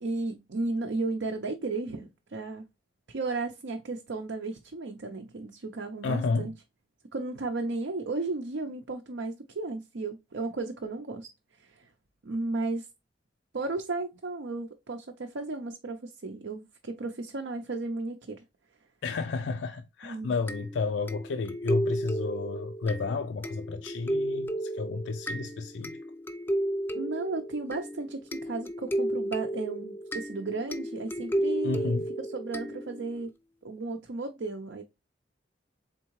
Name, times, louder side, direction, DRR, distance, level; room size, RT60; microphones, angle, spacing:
voice 1, 0.0-2.7 3.1-6.5 7.1-11.3 11.6-11.9 12.2-12.9 13.5-18.4 20.0-20.3 26.9-33.3 33.6-34.8, right 3 dB, 80° right, 0.6 m, -34 dB
voice 2, 6.0-6.5 19.0-26.0 31.6-32.1, left 4 dB, 70° left, 0.4 m, -31 dB
sound 1, 20.5-33.2, right 1 dB, 10° left, 0.4 m, -33 dB
4.3 x 3.6 x 3.0 m
head